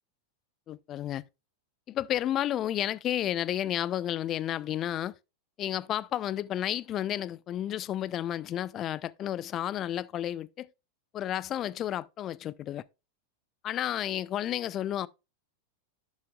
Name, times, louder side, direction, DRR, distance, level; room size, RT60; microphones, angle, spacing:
voice 1, 0.7-1.2 1.9-5.1 5.6-10.7 11.1-12.8 13.6-15.1, left 11 dB, 30° left, 0.4 m, -31 dB
11.0 x 6.3 x 2.4 m
figure-of-eight pair, 90°, 0 cm